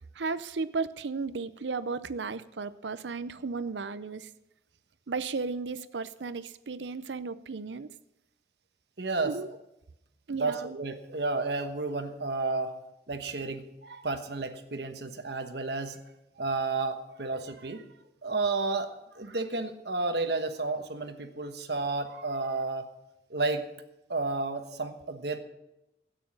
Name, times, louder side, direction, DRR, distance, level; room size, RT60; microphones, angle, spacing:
voice 1, 0.1-4.3 5.1-7.9 9.2-9.5 10.3-10.8, right 4 dB, 90° right, 15 dB, 0.6 m, -34 dB
voice 2, 9.0-9.4 10.3-12.8 13.1-16.0 16.4-17.8 18.2-22.9 23.3-23.7 24.1-25.4, right 3 dB, 75° right, 7 dB, 1.2 m, -32 dB
13.5 x 9.3 x 6.3 m, 0.89 s
head